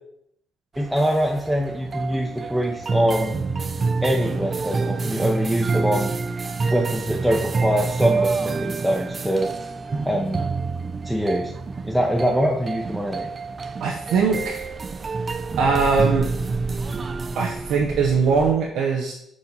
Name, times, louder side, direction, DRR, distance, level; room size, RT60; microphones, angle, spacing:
voice 1, 0.8-3.4 4.0-6.1 6.7-9.5 10.1-10.4 11.0-11.5 11.8-13.3, equal, ahead, -1 dB, 0.7 m, -23 dB
sound 1, 0.8-18.5, right 4 dB, 35° right, 0.4 m, -27 dB
voice 2, 13.8-14.7 15.6-16.3 17.4-19.1, right 5 dB, 80° right, 0 dB, 0.7 m, -21 dB
4.8 x 3.9 x 5.4 m, 0.77 s
cardioid pair, 90°, 0 cm